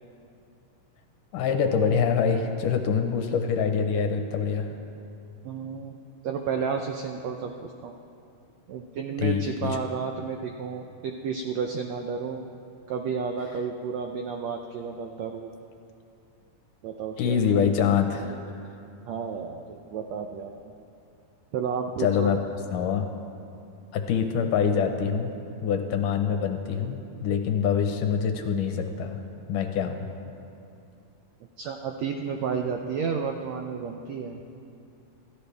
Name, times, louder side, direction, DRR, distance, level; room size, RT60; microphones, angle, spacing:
voice 1, 1.3-4.7 9.2-9.7 17.2-18.4 22.0-22.4 22.7-23.1 23.9-25.3 25.6-29.2 29.5-30.1, left 7 dB, 75° left, 5 dB, 2.5 m, -25 dB
voice 2, 5.4-6.0 6.2-8.0 8.7-12.4 12.9-15.5 16.8-17.4 19.1-20.7 21.5-22.4 31.6-34.4, right 6 dB, 80° right, 4 dB, 1.5 m, -31 dB
27.5 x 14.0 x 3.4 m, 2.6 s
omnidirectional pair, 4.0 m